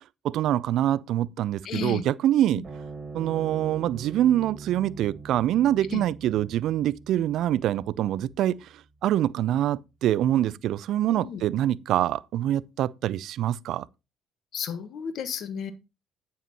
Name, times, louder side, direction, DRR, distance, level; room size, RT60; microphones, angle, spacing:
voice 1, 0.2-2.6 3.1-8.7 9.0-13.9, right 12 dB, 60° right, 0.4 m, -25 dB
voice 2, 1.6-2.0 2.5-2.6 5.9-6.0 11.1-11.4 14.5-15.7, left 7 dB, 55° left, 1.2 m, -33 dB
sound 1, 2.6-9.3, right 4 dB, 40° right, 4.7 m, -43 dB
9.3 x 8.3 x 2.9 m
hypercardioid pair, 55°, 0 cm